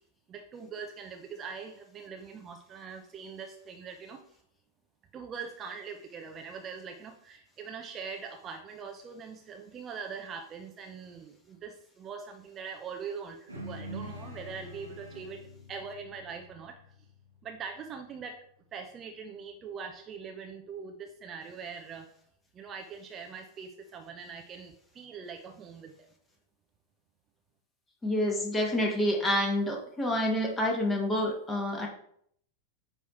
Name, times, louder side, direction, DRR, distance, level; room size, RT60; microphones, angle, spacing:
voice 1, 0.3-4.2 5.1-15.4 15.7-16.9 17.4-18.4 18.7-22.1 22.5-26.1, right 6 dB, 25° right, 3 dB, 0.8 m, -42 dB
sound 1, 13.5-18.2, equal, 80° right, 1.4 m, -46 dB
voice 2, 28.0-31.9, left 1 dB, 15° left, 1 dB, 1.9 m, -28 dB
9.3 x 3.4 x 4.3 m, 0.67 s
figure-of-eight pair, 90°, 0 cm